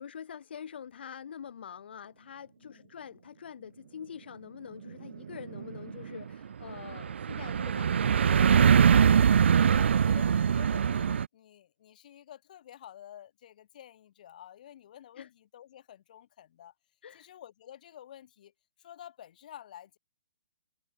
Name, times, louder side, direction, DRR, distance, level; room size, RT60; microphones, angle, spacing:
voice 1, 0.0-9.1 15.2-15.3 17.0-17.3, left 8 dB, 55° left, 1.6 m, -45 dB
voice 2, 2.6-2.9 9.7-16.7 17.1-18.5 18.8-20.0, left 11 dB, 40° left, 6.2 m, -50 dB
sound 1, 4.9-11.3, right 7 dB, 70° right, 0.5 m, -23 dB
hypercardioid pair, 175°, 7 cm